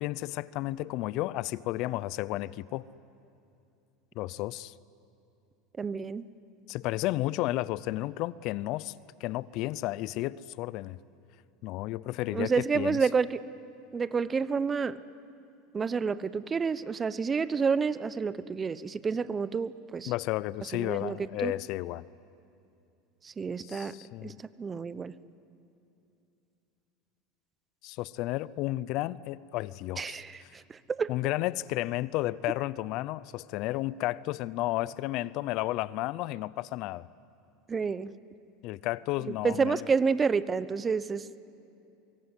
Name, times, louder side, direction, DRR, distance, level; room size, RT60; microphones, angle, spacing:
voice 1, 0.0-2.8 4.2-4.7 6.7-8.9 9.2-11.0 11.6-13.0 20.1-22.0 23.6-24.4 27.8-30.5 31.1-37.1 38.6-39.9, left 17 dB, 60° left, 20 dB, 0.5 m, -32 dB
voice 2, 5.8-6.3 12.3-13.4 13.9-15.0 15.7-20.1 20.7-21.5 23.2-23.9 24.2-25.1 30.0-31.1 37.7-38.1 39.4-41.3, right 5 dB, 25° right, 17 dB, 0.8 m, -29 dB
24.0 x 23.0 x 9.8 m, 2.7 s
hypercardioid pair, 100°, 0 cm